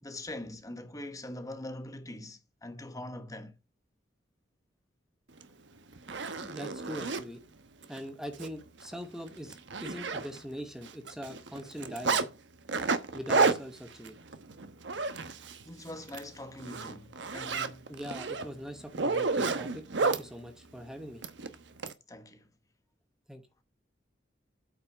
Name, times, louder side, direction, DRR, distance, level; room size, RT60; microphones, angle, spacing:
voice 1, 0.0-3.5 15.6-17.9 22.1-22.4, left 1 dB, 20° left, 1.2 m, -43 dB
Zipper (clothing), 5.4-5.5 5.9-7.2 7.8-8.0 8.3-8.5 8.8-8.9 9.3-10.6 10.8-12.3 12.7-15.6 16.0-16.2 16.6-20.2 21.2-21.9, right 4 dB, 75° right, 1.1 m, -31 dB
voice 2, 6.4-7.4 7.9-12.3 13.1-14.2 17.9-21.2 23.3-23.4, equal, 5° right, 1.0 m, -42 dB
8.7 x 5.7 x 4.9 m
head